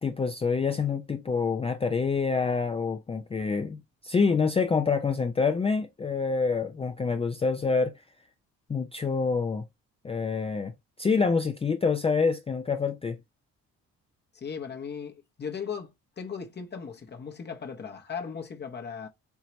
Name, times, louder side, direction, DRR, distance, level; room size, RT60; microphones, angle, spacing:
voice 1, 0.0-7.9 8.7-9.6 10.0-10.7 11.0-13.2, left 5 dB, 20° left, 0.4 m, -26 dB
voice 2, 14.3-19.1, left 6 dB, 35° left, 0.8 m, -37 dB
4.5 x 2.8 x 2.9 m
cardioid pair, 90°, 30 cm